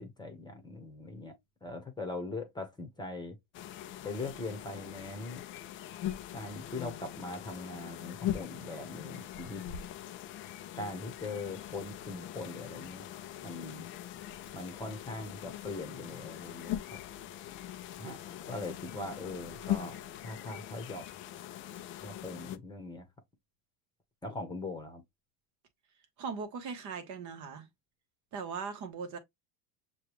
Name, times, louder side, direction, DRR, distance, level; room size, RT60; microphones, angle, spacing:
voice 1, 0.0-1.3 1.6-3.4 4.0-5.4 6.3-9.6 10.7-13.0 13.4-13.9 14.5-17.0 18.0-18.2 18.5-20.0 20.2-21.1 22.0-23.0 24.2-25.0, left 2 dB, 10° left, 1.0 m, -41 dB
sound 1, 3.5-22.6, left 12 dB, 30° left, 0.4 m, -41 dB
voice 2, 26.2-27.7 28.3-29.2, right 5 dB, 40° right, 1.2 m, -39 dB
6.6 x 2.3 x 3.1 m
supercardioid pair, 135°, 45 cm